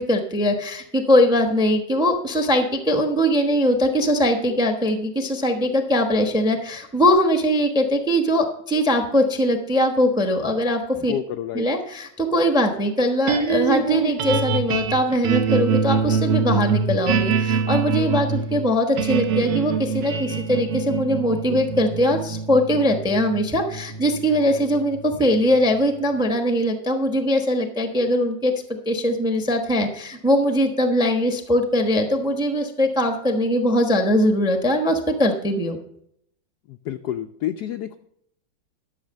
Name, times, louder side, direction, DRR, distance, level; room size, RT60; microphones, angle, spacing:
voice 1, 0.0-11.1 11.5-28.5 28.9-35.8, equal, 5° right, 6 dB, 0.6 m, -21 dB
voice 2, 11.1-11.7 36.7-38.0, left 10 dB, 75° left, 9 dB, 0.9 m, -29 dB
sound 1, 13.3-25.6, right 5 dB, 65° right, 1.5 m, -24 dB
11.5 x 6.7 x 6.4 m, 0.72 s
omnidirectional pair, 2.2 m